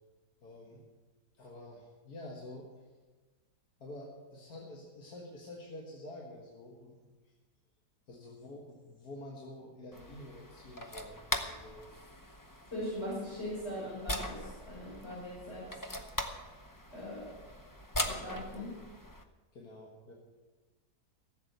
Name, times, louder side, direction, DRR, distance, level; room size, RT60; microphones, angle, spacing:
voice 1, 0.4-0.8 1.3-2.8 3.8-7.0 7.2-7.3 8.1-11.9 17.5-17.6 19.5-20.1, left 1 dB, 65° left, -2 dB, 2.2 m, -48 dB
sound 1, 9.9-19.2, left 1 dB, 20° left, 0.5 m, -41 dB
voice 2, 12.7-15.7 16.9-17.3 18.0-18.8, left 1 dB, 40° left, -8 dB, 5.8 m, -40 dB
15.5 x 7.9 x 8.0 m, 1.3 s
omnidirectional pair, 1.8 m